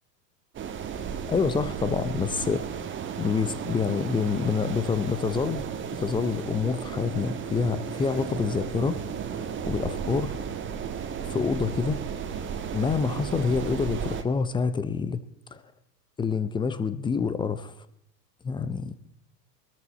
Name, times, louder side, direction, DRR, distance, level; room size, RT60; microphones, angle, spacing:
sound 1, 0.5-14.2, right 7 dB, 25° right, 1.4 m, -34 dB
voice 1, 1.3-2.8 3.2-5.6 5.9-9.0 9.3-10.4 11.2-12.0 12.7-15.2 15.5-15.6 16.2-17.7 18.4-18.9, left 5 dB, 10° left, 13 dB, 0.5 m, -27 dB
21.0 x 13.5 x 4.1 m, 0.73 s
hypercardioid pair, 105°, 49 cm